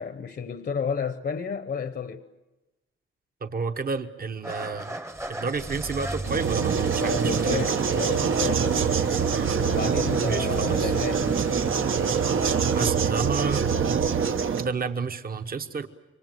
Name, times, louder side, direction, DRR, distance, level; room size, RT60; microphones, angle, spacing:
voice 1, 0.0-2.2 7.0-8.8 9.6-11.4, left 6 dB, 50° left, 0.9 m, -32 dB
voice 2, 3.4-5.0 5.3-7.6 10.2-10.9 12.7-13.6 14.6-15.9, right 4 dB, 45° right, 1.0 m, -30 dB
Engine starting / Idling, 4.4-12.9, right 1 dB, 10° right, 0.8 m, -36 dB
sound 1, 6.2-14.7, right 6 dB, 75° right, 1.0 m, -24 dB
28.5 x 24.0 x 7.7 m
wide cardioid pair, 150°, 21 cm